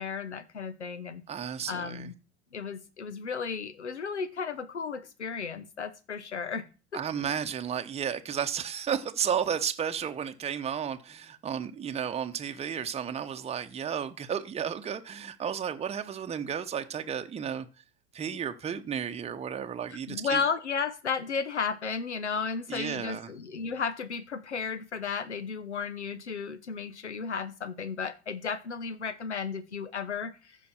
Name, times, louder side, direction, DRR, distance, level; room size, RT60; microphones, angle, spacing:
voice 1, 0.0-1.2 1.7-2.1 2.5-6.6 6.9-7.0 20.1-30.6, left 5 dB, 90° left, 1.0 m, -34 dB
voice 2, 1.3-2.1 6.9-17.7 18.1-20.4 22.7-23.3, right 8 dB, 20° right, 0.9 m, -33 dB
15.0 x 5.2 x 4.3 m
hypercardioid pair, 85°, 34 cm